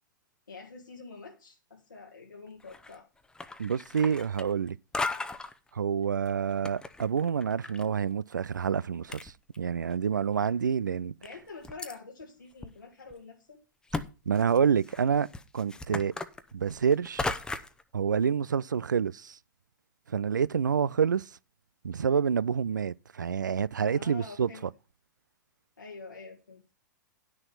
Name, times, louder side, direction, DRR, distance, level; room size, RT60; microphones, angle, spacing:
voice 1, 0.5-3.1 11.2-13.6 23.8-24.6 25.8-26.6, left 4 dB, 80° left, 1.8 m, -46 dB
sound 1, 2.6-3.0 3.3-4.7 4.9-5.5 6.3-7.9 8.1-8.2 8.8-8.9 9.1-9.9 10.5-10.6 11.2-11.9 12.6-12.7 13.1-13.2 13.9-14.1 14.3-17.8, left 3 dB, 5° left, 0.8 m, -36 dB
voice 2, 3.6-4.8 5.7-11.1 14.3-15.3 15.5-16.1 16.5-17.3 17.9-19.4 20.1-21.3 21.8-24.5, right 7 dB, 70° right, 0.4 m, -28 dB
10.5 x 6.5 x 5.7 m
figure-of-eight pair, 100°, 10 cm